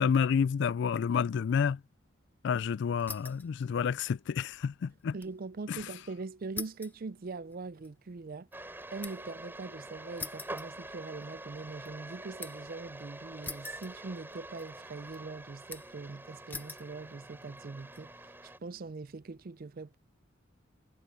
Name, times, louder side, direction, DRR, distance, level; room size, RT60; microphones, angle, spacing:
voice 1, 0.0-1.8 2.4-5.1 5.7-5.8, left 6 dB, 65° left, 0.3 m, -29 dB
sound 1, 3.0-3.5 3.9-5.4 5.7-5.8 6.6-9.4 10.2-11.3 11.7-12.7 13.4-14.3 14.6-15.2 15.7-16.1 16.5-16.9 17.6-18.0, left 3 dB, 10° left, 0.9 m, -45 dB
voice 2, 5.1-20.0, right 3 dB, 50° right, 0.5 m, -42 dB
sound 2, 8.5-18.6, right 1 dB, 10° right, 4.4 m, -46 dB
head